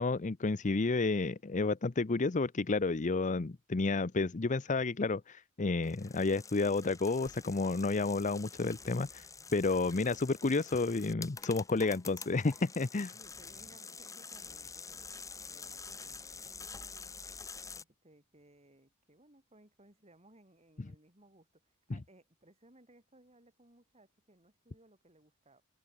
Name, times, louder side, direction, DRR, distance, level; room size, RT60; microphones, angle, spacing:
voice 1, 0.0-9.3 9.5-13.1 21.9-22.0, left 3 dB, 35° left, 0.6 m, -31 dB
sound 1, 5.8-17.8, left 5 dB, 15° left, 1.2 m, -48 dB
voice 2, 13.1-17.2 17.8-25.6, right 1 dB, 30° right, 7.5 m, -63 dB
head